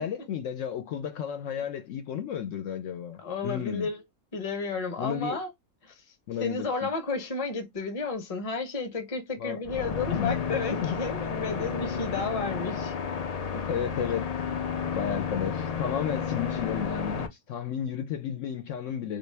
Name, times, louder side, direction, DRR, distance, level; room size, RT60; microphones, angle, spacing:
voice 1, 0.0-3.9 5.0-5.4 6.3-6.9 9.4-9.6 10.1-11.0 12.1-12.3 13.6-19.2, left 8 dB, 70° left, 0.9 m, -33 dB
voice 2, 3.2-4.0 4.3-5.5 5.8-6.0 6.4-12.9 13.5-13.6, left 4 dB, 30° left, 0.8 m, -32 dB
sound 1, 9.7-17.3, left 6 dB, 85° left, 0.3 m, -32 dB
3.2 x 2.5 x 3.2 m
omnidirectional pair, 1.5 m